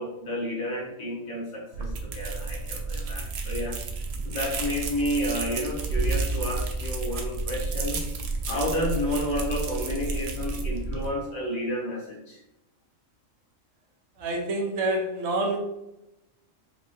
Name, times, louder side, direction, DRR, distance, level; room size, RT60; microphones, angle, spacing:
voice 1, 0.0-3.8 4.2-8.0 8.5-12.4, equal, 70° left, -2 dB, 1.4 m, -31 dB
sound 1, 1.7-11.1, right 3 dB, 65° right, 0.8 m, -31 dB
voice 2, 14.2-15.6, right 2 dB, 80° right, 1 dB, 1.2 m, -27 dB
4.8 x 2.7 x 2.4 m, 0.89 s
omnidirectional pair, 1.3 m